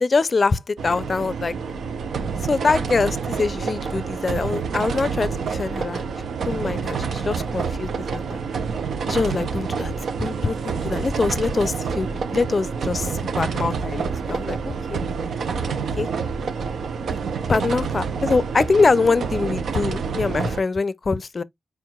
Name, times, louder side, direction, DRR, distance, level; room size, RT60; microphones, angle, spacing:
voice 1, 0.0-1.6 2.4-6.0 6.4-8.4 9.1-9.9 10.2-14.6 14.9-15.0 16.0-16.1 17.5-21.4, left 4 dB, 45° left, 0.4 m, -23 dB
sound 1, 0.8-20.6, right 5 dB, 75° right, 0.6 m, -28 dB
4.6 x 4.5 x 2.3 m
cardioid pair, 55°, 0 cm